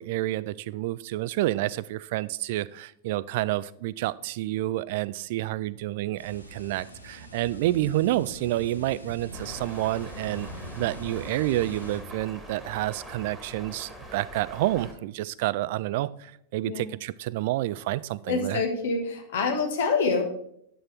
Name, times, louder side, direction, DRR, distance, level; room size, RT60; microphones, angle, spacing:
voice 1, 0.0-10.5 10.8-18.6, right 16 dB, 50° right, 19 dB, 0.3 m, -29 dB
sound 1, 6.2-12.0, equal, 85° left, 1.1 m, -42 dB
sound 2, 9.3-14.9, equal, 5° right, 1.8 m, -44 dB
voice 2, 18.3-20.2, left 4 dB, 60° left, 4 dB, 1.5 m, -26 dB
8.9 x 7.5 x 3.5 m, 0.71 s
figure-of-eight pair, 90°, 0 cm